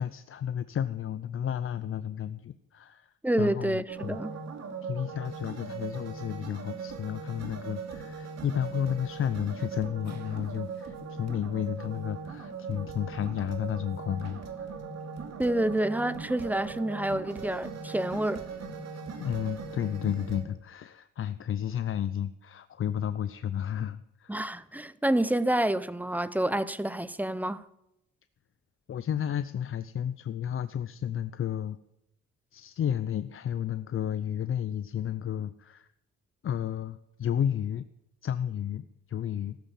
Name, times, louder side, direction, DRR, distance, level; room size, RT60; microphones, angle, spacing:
voice 1, 0.0-4.2 4.8-14.7 18.9-24.3 28.9-31.8 32.5-35.9 36.4-37.9 38.2-39.6, left 9 dB, 45° left, 0.6 m, -32 dB
voice 2, 3.2-4.3 15.4-18.5 24.3-27.6, right 1 dB, 5° right, 0.8 m, -28 dB
sound 1, 3.9-20.4, right 5 dB, 60° right, 2.6 m, -40 dB
14.0 x 12.5 x 7.5 m
cardioid pair, 90°, 30 cm